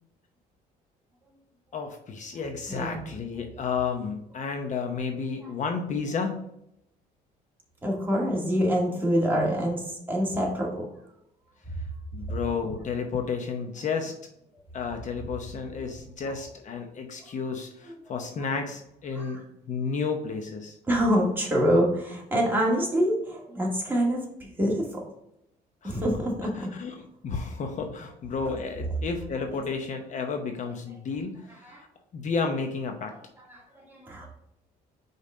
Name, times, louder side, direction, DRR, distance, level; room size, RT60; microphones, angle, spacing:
voice 1, 1.7-6.4 12.1-14.1 14.7-19.4 19.7-20.8 25.8-26.0 26.6-26.9 27.2-31.7 32.1-33.1, left 5 dB, 45° left, 5 dB, 0.8 m, -32 dB
voice 2, 2.7-3.0 5.4-5.5 7.8-10.8 17.3-17.4 19.2-19.4 20.9-25.0 25.8-26.7 28.5-28.6 29.5-29.6 31.6-31.8 33.5-34.3, equal, 10° right, -3 dB, 2.1 m, -26 dB
5.3 x 4.0 x 4.9 m, 0.78 s
cardioid pair, 110°, 17 cm